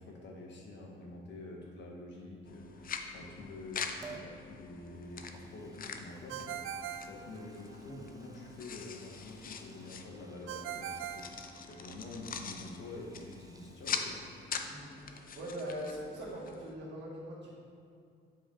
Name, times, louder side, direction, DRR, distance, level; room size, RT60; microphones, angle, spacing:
voice 1, 0.0-14.5, left 2 dB, 65° left, -1 dB, 1.5 m, -47 dB
sound 1, 2.5-16.7, left 6 dB, 45° left, 0.6 m, -44 dB
Liquid, 4.0-4.4 4.9-14.6 14.9-15.0, right 5 dB, 20° right, 0.4 m, -57 dB
Ringtone, 6.3-8.0 10.5-12.1, right 9 dB, 90° right, 0.4 m, -42 dB
voice 2, 14.7-17.6, equal, 60° right, -6 dB, 1.7 m, -42 dB
7.6 x 4.9 x 4.4 m, 2.4 s
cardioid pair, 90°, 20 cm